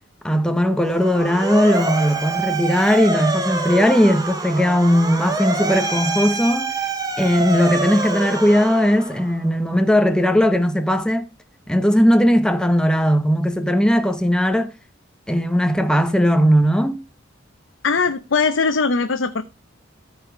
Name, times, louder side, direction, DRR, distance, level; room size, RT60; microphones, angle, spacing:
voice 1, 0.2-6.7 7.2-11.3 11.7-14.7 15.3-17.0, equal, 5° left, 0.8 m, -18 dB
Motor vehicle (road) / Siren, 0.8-9.4, right 3 dB, 20° right, 1.6 m, -26 dB
voice 2, 17.8-19.4, left 4 dB, 70° left, 0.7 m, -20 dB
14.0 x 4.9 x 5.0 m
head